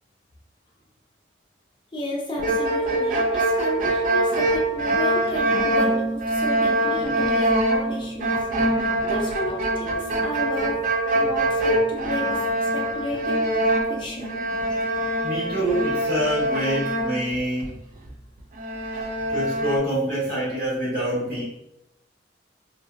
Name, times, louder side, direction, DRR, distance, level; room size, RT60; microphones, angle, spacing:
voice 1, 1.9-8.4 9.0-10.8 11.1-13.4 13.9-14.4, equal, 25° left, -4 dB, 0.6 m, -32 dB
sound 1, 2.4-17.8 18.1-18.2 18.6-19.8, right 1 dB, 45° right, 0.3 m, -24 dB
voice 2, 15.2-17.7 18.9-19.0 19.3-21.4, equal, 65° right, -9 dB, 0.9 m, -26 dB
2.3 x 2.1 x 2.5 m, 0.89 s
head